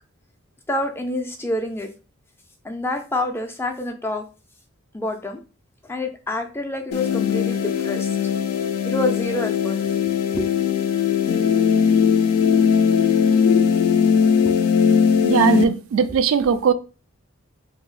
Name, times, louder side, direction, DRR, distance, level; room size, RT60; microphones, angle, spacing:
voice 1, 0.7-1.9 2.6-4.2 4.9-5.4 5.8-9.8 10.3-10.5 14.4-14.5, left 1 dB, 10° left, 0.3 m, -27 dB
sound 1, 6.9-15.6, left 7 dB, 85° left, 0.4 m, -19 dB
voice 2, 15.2-16.7, right 6 dB, 70° right, 0.3 m, -19 dB
2.7 x 2.0 x 3.9 m
head